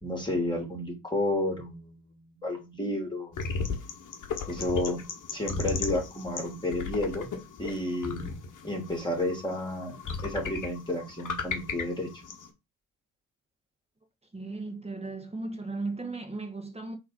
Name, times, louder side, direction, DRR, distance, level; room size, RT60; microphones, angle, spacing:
voice 1, 0.0-3.3 4.5-5.0 5.3-7.3 7.6-8.3 8.6-12.1, left 1 dB, 10° left, 2.3 m, -31 dB
sound 1, 3.3-12.5, left 5 dB, 40° left, 1.2 m, -36 dB
voice 2, 14.3-17.0, right 3 dB, 10° right, 1.2 m, -36 dB
3.9 x 3.0 x 4.1 m
hypercardioid pair, 50°, 49 cm